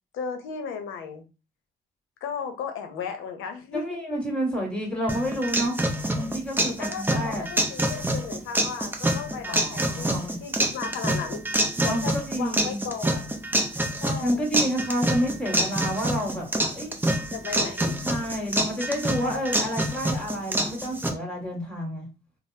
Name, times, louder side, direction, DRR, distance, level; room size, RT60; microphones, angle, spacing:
voice 1, 0.1-1.2 2.2-3.8 6.8-10.1 10.4-11.4 11.8-13.4 14.0-14.7 17.3-18.0, left 6 dB, 85° left, 0.7 m, -35 dB
voice 2, 3.7-5.8 6.1-7.4 9.4-10.4 11.8-12.8 14.2-16.5 16.7-16.9 18.0-22.0, equal, 5° left, 1.5 m, -29 dB
sound 1, 5.1-21.1, right 1 dB, 10° right, 0.6 m, -27 dB
3.4 x 2.0 x 2.7 m
cardioid pair, 90°, 20 cm